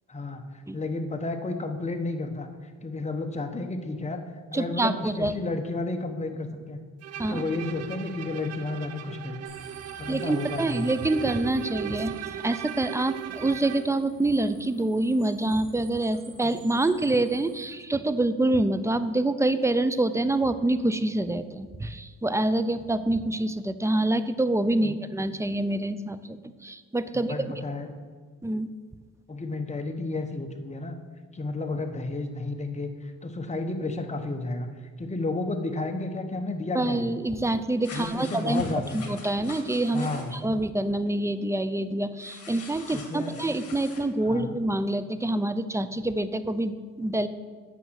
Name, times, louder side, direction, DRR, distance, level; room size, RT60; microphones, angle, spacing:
voice 1, 0.1-0.4 0.7-2.5 2.8-4.2 4.5-6.8 7.3-9.5 10.0-11.0 16.4-16.6 24.8-25.0 27.1-27.9 29.3-31.0 31.3-34.7 35.0-37.1 37.9-39.1 39.9-40.3 42.9-43.3 44.2-44.6, left 2 dB, 20° left, 6 dB, 1.1 m, -32 dB
voice 2, 4.5-5.3 7.2-7.4 10.1-26.4 26.6-27.6 28.4-28.7 36.7-38.6 38.9-47.3, right 2 dB, 10° right, 12 dB, 0.5 m, -26 dB
Bowed string instrument, 7.0-14.0, right 10 dB, 55° right, 0.6 m, -38 dB
sound 1, 9.4-17.6, right 3 dB, 85° right, 3.4 m, -52 dB
sound 2, 37.8-40.4 42.2-44.0, left 3 dB, 50° left, 2.1 m, -42 dB
9.2 x 6.4 x 6.4 m, 1.5 s
cardioid pair, 90°, 30 cm